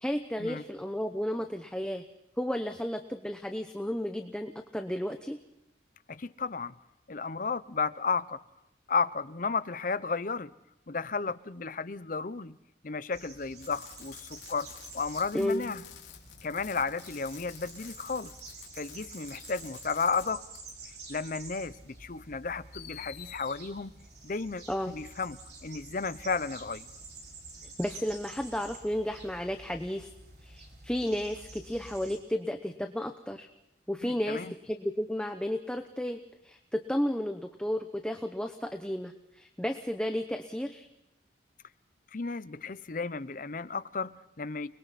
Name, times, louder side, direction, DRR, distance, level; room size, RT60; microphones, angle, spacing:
voice 1, 0.0-2.0 2.4-5.4 15.3-15.7 24.7-24.9 27.8-30.1 30.4-33.5 33.9-40.9, equal, 5° left, 0.8 m, -33 dB
voice 2, 6.1-6.7 7.1-8.4 8.9-10.5 10.9-12.6 12.8-14.7 14.9-15.8 16.4-18.3 18.8-20.4 21.1-23.9 24.2-26.9 34.0-34.5 42.1-44.7, left 4 dB, 45° left, 0.7 m, -33 dB
sound 1, 13.1-32.2, right 3 dB, 60° right, 4.7 m, -49 dB
Fireworks, 13.6-20.3 20.5-20.7 21.8-21.9 22.7-23.6 25.2-25.3, left 10 dB, 80° left, 3.1 m, -50 dB
29.5 x 21.5 x 4.2 m
head